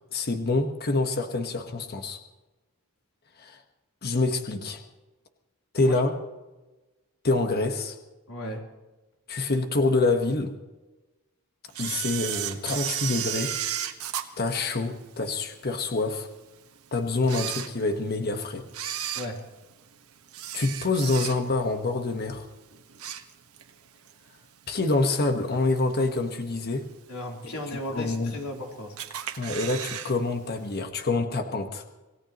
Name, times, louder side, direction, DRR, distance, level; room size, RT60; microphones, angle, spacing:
voice 1, 0.1-2.2 3.4-3.6 4.0-4.8 5.7-6.1 7.2-8.0 9.3-10.5 11.8-13.5 14.4-16.3 16.9-18.6 20.5-22.5 24.7-26.8 27.9-28.4 29.4-31.8, left 3 dB, 45° left, 5 dB, 1.3 m, -26 dB
voice 2, 8.3-8.6 19.2-19.4 27.1-29.0, left 1 dB, 80° left, 0 dB, 3.6 m, -35 dB
Camera, 11.7-15.3 15.8-15.9 16.6-16.7 17.2-18.2 18.7-21.7 22.0-22.3 22.7-23.7 24.1-24.2 25.1-25.2 25.8-26.2 26.6-26.7 26.9-27.0 27.2-27.3 28.0-28.5 29.0-30.1 30.4-30.5 30.7-30.8, right 10 dB, 75° right, 1.4 m, -33 dB
27.0 x 17.5 x 3.1 m, 1.1 s
head